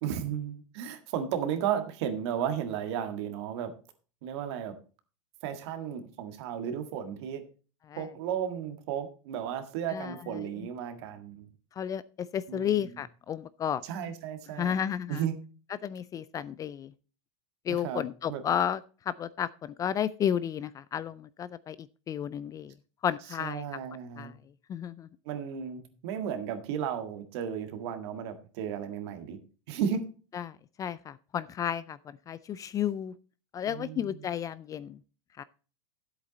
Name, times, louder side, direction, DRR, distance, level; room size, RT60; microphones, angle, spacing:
voice 1, 0.0-3.7 4.2-4.7 5.4-7.4 8.0-11.5 12.5-12.9 13.8-14.8 15.1-15.4 17.7-18.4 23.4-24.4 25.3-29.4 29.7-30.0 33.7-34.2, right 8 dB, 60° right, 8 dB, 1.8 m, -34 dB
voice 2, 11.8-13.8 14.6-15.2 15.8-16.9 17.7-22.7 23.0-23.7 24.2-24.3 24.7-25.1 30.3-33.1 33.5-35.0 35.4-35.5, left 9 dB, 20° left, 17 dB, 0.3 m, -32 dB
10.5 x 8.0 x 4.0 m, 0.36 s
supercardioid pair, 130°, 16 cm